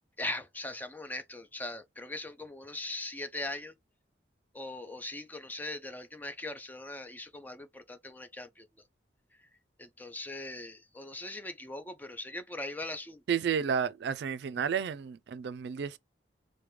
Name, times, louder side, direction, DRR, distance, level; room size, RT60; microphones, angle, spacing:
voice 1, 0.2-3.7 4.5-8.7 9.8-13.2, left 2 dB, 10° left, 0.4 m, -40 dB
voice 2, 13.3-16.0, right 7 dB, 65° right, 0.3 m, -31 dB
4.8 x 2.2 x 3.1 m
head